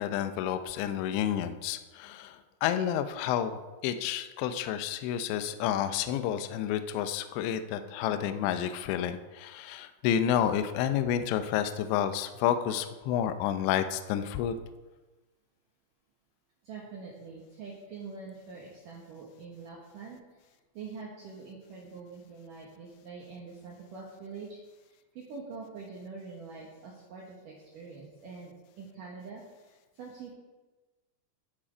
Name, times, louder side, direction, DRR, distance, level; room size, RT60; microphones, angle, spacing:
voice 1, 0.0-14.5, left 10 dB, 85° left, 9 dB, 2.6 m, -30 dB
voice 2, 16.6-24.6 24.9-30.3, right 4 dB, 90° right, -2 dB, 1.8 m, -45 dB
11.5 x 7.6 x 5.0 m, 1.2 s
omnidirectional pair, 5.9 m